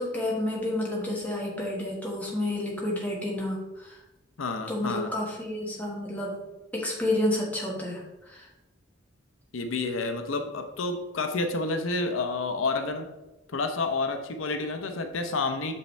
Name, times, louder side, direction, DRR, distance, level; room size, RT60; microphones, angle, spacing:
voice 1, 0.0-4.0 4.7-6.4 6.7-8.5, left 1 dB, 10° left, -3 dB, 1.4 m, -30 dB
voice 2, 4.4-5.1 9.5-13.1 13.5-15.7, left 3 dB, 85° left, 6 dB, 0.7 m, -29 dB
6.4 x 5.5 x 3.3 m, 0.99 s
head